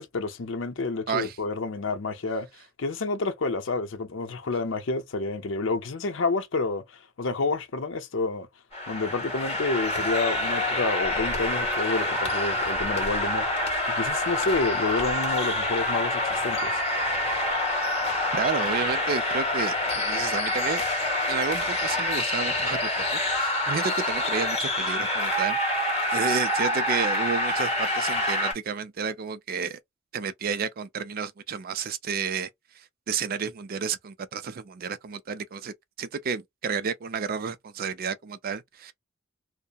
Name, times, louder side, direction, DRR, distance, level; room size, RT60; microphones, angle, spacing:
voice 1, 0.0-2.5 2.8-8.5 8.9-16.8, left 3 dB, 75° left, 0.6 m, -29 dB
sound 1, 8.7-28.5, left 1 dB, 35° left, 1.5 m, -27 dB
voice 2, 18.3-20.8 21.3-23.0 23.3-29.8 30.1-32.5 32.8-38.9, right 6 dB, 50° right, 0.4 m, -31 dB
2.8 x 2.1 x 2.2 m
head